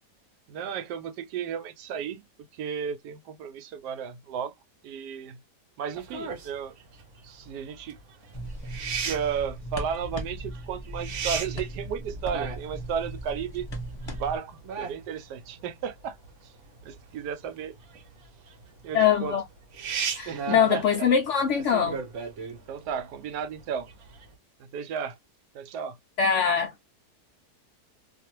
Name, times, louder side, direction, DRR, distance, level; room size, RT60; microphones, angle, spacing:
voice 1, 0.5-2.2 2.5-4.5 4.8-5.4 5.8-6.7 7.2-8.0 9.0-13.7 14.1-16.2 16.4-16.5 16.8-17.8 18.8-19.4 20.3-21.1 22.7-23.9 24.6-25.2 25.5-26.0, right 7 dB, 90° right, 1.2 m, -34 dB
sound 1, 5.9-24.3, right 6 dB, 60° right, 0.9 m, -37 dB
sound 2, 8.3-14.4, right 1 dB, 20° left, 0.9 m, -37 dB
voice 2, 18.9-19.4 20.2-22.0 26.2-26.7, left 7 dB, 70° left, 0.7 m, -23 dB
2.5 x 2.4 x 2.9 m
omnidirectional pair, 1.7 m